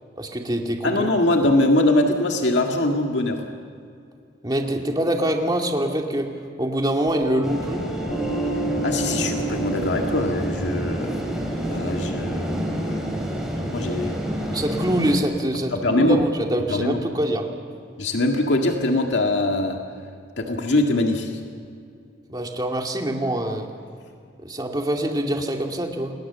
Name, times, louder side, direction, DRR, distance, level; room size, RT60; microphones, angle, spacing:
voice 1, 0.2-1.1 4.4-6.3 6.6-7.8 14.5-17.4 22.3-23.7 24.4-26.1, right 1 dB, 25° right, 2 dB, 2.5 m, -24 dB
voice 2, 0.8-3.4 8.8-11.1 11.7-13.0 13.7-14.2 15.7-16.2 16.7-17.0 18.0-19.8 20.4-21.3, left 1 dB, 85° left, 2 dB, 2.0 m, -22 dB
Piano, 7.1-14.1, right 2 dB, 20° left, 5.0 m, -32 dB
sound 1, 7.4-15.2, equal, 5° right, 4.2 m, -28 dB
28.0 x 20.5 x 7.0 m, 2.3 s
head